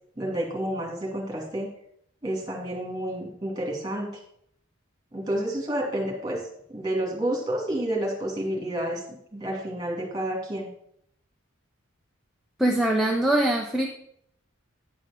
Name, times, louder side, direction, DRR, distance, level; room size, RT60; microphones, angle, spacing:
voice 1, 0.2-1.7 2.2-4.2 5.1-6.4 6.7-9.0 9.3-10.7, right 1 dB, 20° right, -1 dB, 2.4 m, -29 dB
voice 2, 12.6-13.9, right 1 dB, ahead, -1 dB, 0.6 m, -23 dB
9.8 x 5.0 x 5.0 m, 0.70 s
head